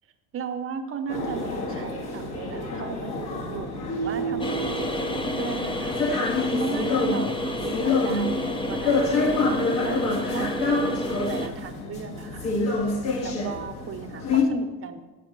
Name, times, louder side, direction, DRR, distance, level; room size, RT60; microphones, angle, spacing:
voice 1, 0.3-6.0 6.6-12.5 13.2-15.0, right 6 dB, 30° right, 7 dB, 0.9 m, -37 dB
sound 1, 1.1-14.4, left 3 dB, 60° left, 1.8 m, -27 dB
sound 2, 4.4-11.5, left 1 dB, 10° left, 0.7 m, -30 dB
7.6 x 4.9 x 6.0 m, 1.2 s
supercardioid pair, 90°, 44 cm